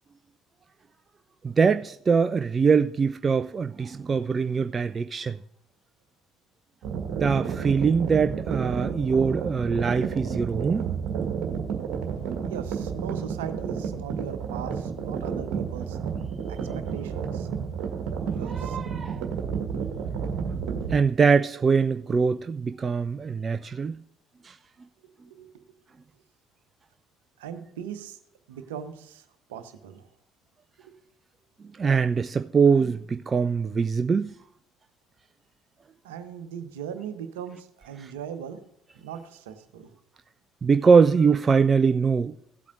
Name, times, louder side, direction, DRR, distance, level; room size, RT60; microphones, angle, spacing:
voice 1, 1.4-5.4 7.2-10.9 18.4-19.3 20.9-23.9 24.4-24.5 31.8-34.3 40.6-42.3, right 5 dB, 30° right, 0.4 m, -23 dB
sound 1, 6.8-20.9, right 6 dB, 55° right, 1.6 m, -31 dB
voice 2, 12.5-16.0 16.5-17.5 18.3-18.8 25.0-25.6 27.4-28.2 28.5-30.1 30.8-31.0 36.0-38.6 38.9-39.9, right 8 dB, 70° right, 0.9 m, -39 dB
16.0 x 8.3 x 2.6 m
figure-of-eight pair, 55°, 0 cm